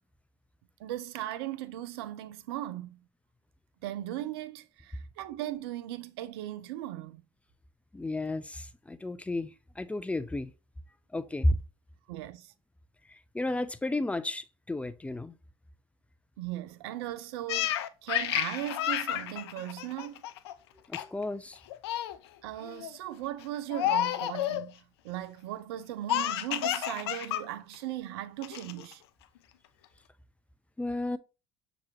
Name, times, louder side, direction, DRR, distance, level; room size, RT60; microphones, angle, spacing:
voice 1, 0.8-3.0 3.8-7.2 12.1-12.5 16.4-20.2 22.4-29.0, right 13 dB, 75° right, 0.4 m, -38 dB
voice 2, 7.9-10.5 11.1-11.6 13.1-15.3 20.9-21.6 30.8-31.2, left 1 dB, 10° left, 0.4 m, -32 dB
Laughter, 17.5-20.5 20.9-21.2 21.5-22.2 22.6-23.0 23.7-24.7 26.1-27.4 27.7-27.8 28.4-28.9, left 12 dB, 75° left, 0.4 m, -31 dB
6.0 x 3.0 x 2.6 m
hypercardioid pair, 70°, 13 cm